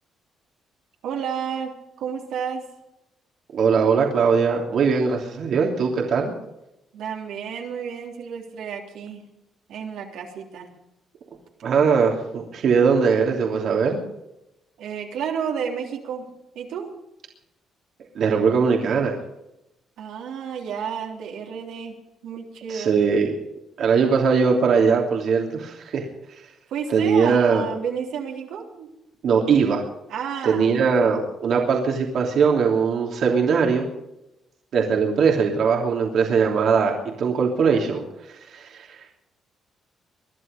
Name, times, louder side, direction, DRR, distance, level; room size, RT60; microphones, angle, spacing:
voice 1, 1.0-2.6 6.9-9.3 9.7-10.7 14.8-16.9 20.0-22.0 22.2-23.0 26.7-28.9 30.1-31.1, right 7 dB, 85° right, 0 dB, 3.6 m, -31 dB
voice 2, 3.5-6.3 11.6-14.0 18.1-19.2 22.7-23.4 23.8-26.0 26.9-27.7 29.2-29.8 30.4-33.9 34.7-39.0, right 5 dB, 65° right, 0 dB, 3.1 m, -20 dB
22.5 x 11.5 x 5.3 m, 0.87 s
cardioid pair, 90°, 0 cm